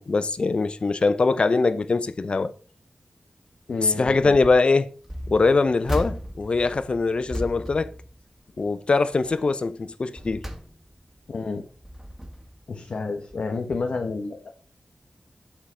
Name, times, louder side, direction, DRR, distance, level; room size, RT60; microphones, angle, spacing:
voice 1, 0.0-2.5 3.8-4.9 5.3-7.9 8.6-10.5, left 3 dB, 55° left, 0.7 m, -22 dB
voice 2, 3.7-4.4 11.3-11.6 12.7-14.5, left 4 dB, 75° left, 1.1 m, -30 dB
sound 1, 5.0-8.7 9.1-9.4 9.9-11.2 11.7-12.6 13.3-13.5 13.7-13.8, equal, 15° right, 2.1 m, -36 dB
7.5 x 7.3 x 4.4 m
wide cardioid pair, 75°, 2 cm